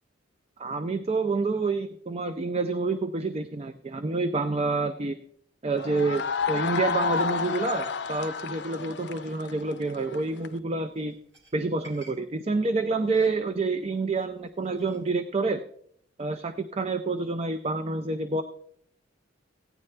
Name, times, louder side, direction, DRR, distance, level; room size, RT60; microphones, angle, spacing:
voice 1, 0.6-5.2 5.6-11.1 11.5-15.6 16.2-18.4, right 3 dB, 30° right, 9 dB, 0.4 m, -28 dB
sound 1, 5.8-10.5, left 5 dB, 60° left, 0.6 m, -30 dB
sound 2, 10.0-15.2, right 1 dB, 80° right, 3.6 m, -58 dB
15.5 x 9.5 x 3.3 m, 0.67 s
head